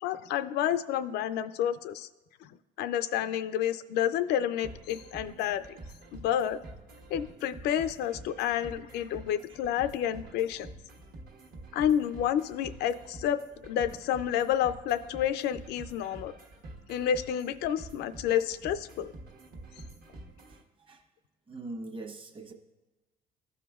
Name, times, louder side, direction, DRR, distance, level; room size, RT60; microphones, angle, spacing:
voice 1, 0.0-2.1 2.4-5.8 6.1-6.6 7.1-10.7 11.7-16.3 16.9-19.1, left 10 dB, 80° left, 13 dB, 0.4 m, -30 dB
sound 1, 4.6-20.6, right 2 dB, 60° right, 1.2 m, -48 dB
voice 2, 20.5-21.0 21.5-22.5, right 2 dB, 30° right, 2 dB, 1.1 m, -42 dB
13.5 x 5.0 x 2.4 m, 1.2 s
cardioid pair, 110°, 17 cm